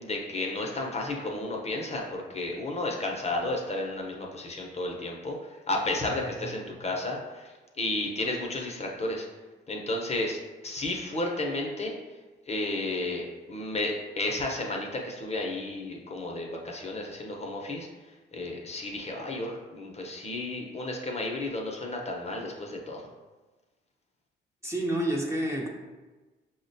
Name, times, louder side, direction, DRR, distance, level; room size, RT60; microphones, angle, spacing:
voice 1, 0.0-9.3 9.7-11.9 12.5-17.9 18.3-23.0, left 2 dB, 35° left, 0 dB, 0.6 m, -32 dB
voice 2, 24.6-25.7, right 1 dB, 15° right, -2 dB, 0.6 m, -29 dB
5.6 x 2.1 x 2.6 m, 1.2 s
cardioid pair, 90°, 20 cm